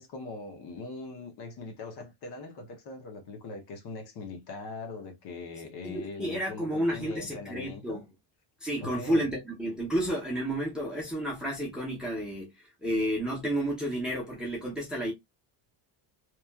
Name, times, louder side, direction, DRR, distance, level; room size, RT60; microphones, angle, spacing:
voice 1, 0.0-8.0 8.8-9.3, left 3 dB, 50° left, 0.8 m, -41 dB
voice 2, 5.8-8.0 8.6-12.5 12.8-15.1, equal, ahead, 0.7 m, -31 dB
3.0 x 2.3 x 2.2 m
cardioid pair, 160°, 49 cm